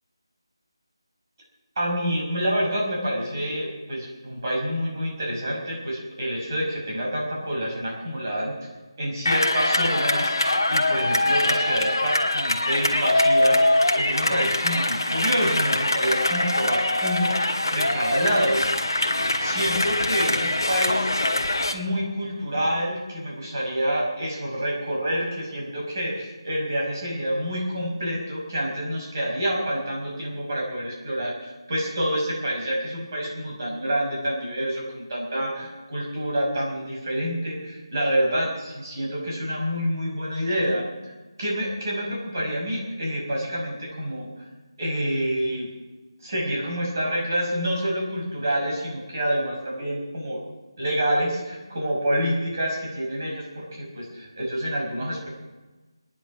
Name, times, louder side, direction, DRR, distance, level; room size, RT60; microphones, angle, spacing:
voice 1, 1.8-8.6 9.0-17.4 17.7-18.6 19.4-21.1 21.7-41.1 41.4-44.5 44.8-45.7 46.2-50.4 50.8-55.3, equal, 40° right, -3 dB, 5.7 m, -27 dB
sound 1, 9.2-21.7, left 2 dB, 55° left, 1.6 m, -23 dB
20.5 x 10.5 x 6.1 m, 1.2 s
figure-of-eight pair, 160°, 3 cm